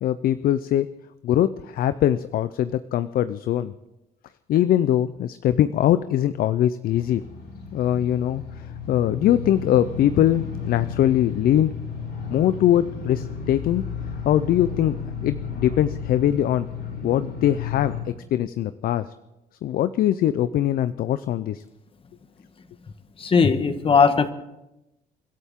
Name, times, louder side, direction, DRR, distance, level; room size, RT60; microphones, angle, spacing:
voice 1, 0.0-0.9 1.2-3.7 4.5-7.2 7.7-8.4 8.9-11.7 12.3-13.8 14.3-15.0 15.2-16.7 17.0-19.1 19.6-21.6, left 11 dB, 60° left, 13 dB, 0.6 m, -22 dB
sound 1, 6.8-18.0, left 6 dB, 75° left, 6.9 m, -33 dB
voice 2, 23.2-24.3, left 5 dB, 35° left, 10 dB, 1.4 m, -18 dB
29.0 x 12.5 x 3.7 m, 0.94 s
cardioid pair, 110°, 17 cm